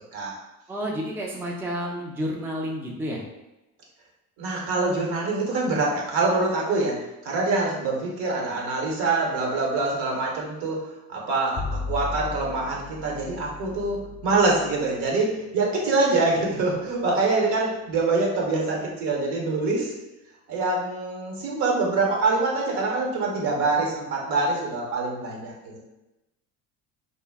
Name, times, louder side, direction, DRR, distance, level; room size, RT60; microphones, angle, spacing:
voice 1, 0.7-3.2, equal, 5° right, -2 dB, 0.4 m, -30 dB
voice 2, 4.4-7.0 7.2-10.8 11.1-14.0 14.2-19.9 20.5-25.8, right 3 dB, 65° right, -2 dB, 0.9 m, -25 dB
Bowed string instrument, 11.6-18.0, left 4 dB, 30° left, 0.7 m, -38 dB
2.2 x 2.0 x 3.5 m, 0.99 s
hypercardioid pair, 65°, 43 cm